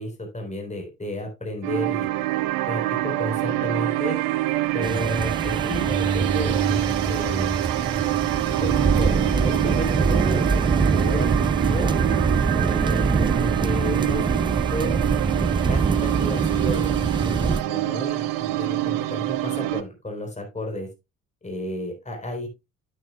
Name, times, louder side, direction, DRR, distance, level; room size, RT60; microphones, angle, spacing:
voice 1, 0.0-2.1 2.7-4.2 4.7-7.6 8.6-10.6 10.9-11.3 11.6-11.9 12.6-14.9 15.7-20.9 21.4-22.5, left 1 dB, 20° left, 2 dB, 3.7 m, -32 dB
sound 1, 1.6-19.8, right 17 dB, 60° right, 0.7 m, -26 dB
sound 2, 4.8-17.6, right 4 dB, 15° right, 0.5 m, -24 dB
9.2 x 8.9 x 2.3 m, 0.24 s
figure-of-eight pair, 45°, 38 cm